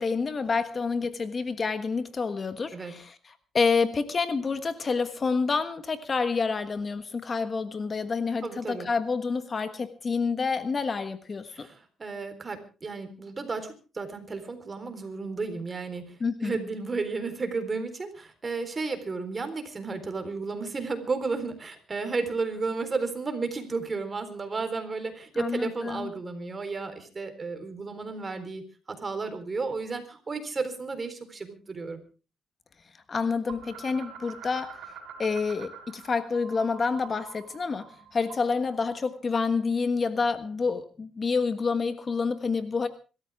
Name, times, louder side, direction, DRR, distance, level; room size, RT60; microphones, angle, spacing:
voice 1, 0.0-11.7 16.2-16.6 25.3-26.1 33.1-34.9 35.2-42.9, left 4 dB, 35° left, 11 dB, 1.4 m, -28 dB
voice 2, 8.4-8.9 11.5-28.6 28.9-32.0, right 4 dB, 30° right, 8 dB, 4.0 m, -33 dB
sound 1, 33.5-36.1 36.3-38.6, right 7 dB, 85° right, 4.1 m, -45 dB
26.0 x 13.5 x 3.6 m, 0.34 s
cardioid pair, 90°, 0 cm